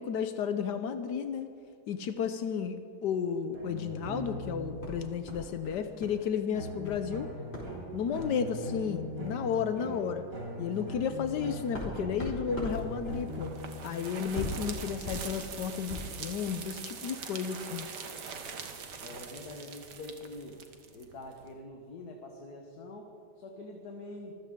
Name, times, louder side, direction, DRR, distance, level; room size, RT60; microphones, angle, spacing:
voice 1, 0.0-1.5 1.9-7.3 7.9-10.3 10.6-13.5 13.8-17.9, left 7 dB, 80° left, 9 dB, 1.4 m, -33 dB
sound 1, 3.5-5.2 6.5-14.3, equal, 55° right, 3.5 m, -40 dB
sound 2, 4.8-6.2 6.5-7.0 7.5-7.7 8.1-8.4 9.2-9.3 9.7-9.8 10.3-16.2, left 1 dB, 35° left, 4.8 m, -41 dB
sound 3, 12.7-21.5, right 6 dB, 80° right, 1.8 m, -43 dB
voice 2, 19.0-20.7 20.9-24.4, left 2 dB, 65° left, 2 dB, 1.8 m, -45 dB
25.0 x 15.0 x 3.7 m, 2.2 s
omnidirectional pair, 1.8 m